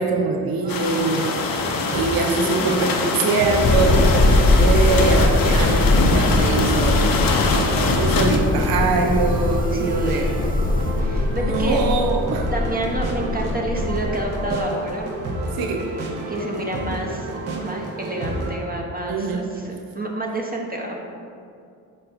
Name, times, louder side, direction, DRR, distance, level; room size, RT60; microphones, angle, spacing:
voice 1, 0.0-1.6 1.9-7.1 7.5-10.4 11.3-12.5 15.6-15.9 19.1-19.4, right 4 dB, 65° right, 3 dB, 0.8 m, -23 dB
sound 1, 0.6-18.5, right 2 dB, 80° right, 1.1 m, -31 dB
sound 2, 0.7-8.4, left 4 dB, 60° left, 0.8 m, -23 dB
sound 3, 3.6-14.6, left 2 dB, 25° left, 0.4 m, -21 dB
voice 2, 9.7-10.6 11.0-11.8 12.5-15.3 16.3-17.3 17.6-21.0, right 1 dB, 25° right, -1 dB, 1.0 m, -29 dB
6.2 x 4.4 x 4.3 m, 2.4 s
supercardioid pair, 60°, 38 cm